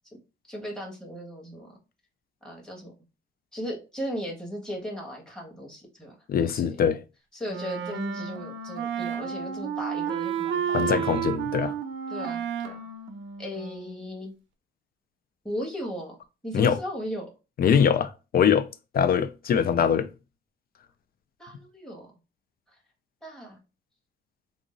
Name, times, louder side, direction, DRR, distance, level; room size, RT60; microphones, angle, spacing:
voice 1, 0.5-1.7 2.4-2.9 3.5-6.1 6.5-6.8 7.3-11.1 12.1-12.8 13.4-14.3 15.4-16.1 16.4-17.3 17.7-17.9 21.4-22.1 23.2-23.6, equal, 5° left, 1.4 m, -36 dB
voice 2, 6.3-7.0 10.7-11.7 16.5-16.8 17.6-18.7 18.9-20.1, left 7 dB, 50° left, 0.4 m, -22 dB
Wind instrument woodwind instrument, 7.5-14.1, right 8 dB, 75° right, 0.6 m, -31 dB
3.6 x 2.0 x 3.8 m
cardioid pair, 90°, 20 cm